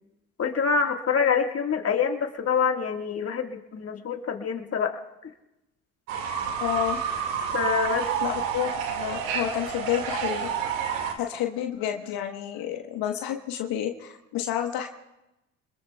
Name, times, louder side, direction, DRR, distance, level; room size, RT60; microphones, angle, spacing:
voice 1, 0.4-5.0 7.5-8.1, left 6 dB, 35° left, 4 dB, 1.7 m, -26 dB
Fowl / Bird, 6.1-11.1, right 7 dB, 85° right, 2.1 m, -29 dB
voice 2, 6.6-7.0 8.2-10.5 11.2-14.9, left 11 dB, 65° left, 4 dB, 1.2 m, -30 dB
28.5 x 21.5 x 2.3 m, 0.94 s
hypercardioid pair, 65°, 39 cm